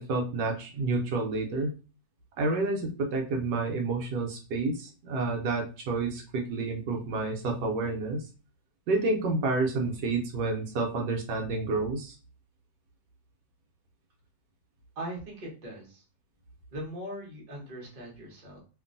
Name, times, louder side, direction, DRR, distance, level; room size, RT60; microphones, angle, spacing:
voice 1, 0.0-1.7 2.4-8.2 8.9-12.2, right 3 dB, 75° right, 1 dB, 1.2 m, -29 dB
voice 2, 15.0-16.0 16.7-18.6, right 1 dB, 40° right, -2 dB, 0.7 m, -40 dB
2.9 x 2.5 x 2.5 m, 0.34 s
omnidirectional pair, 2.0 m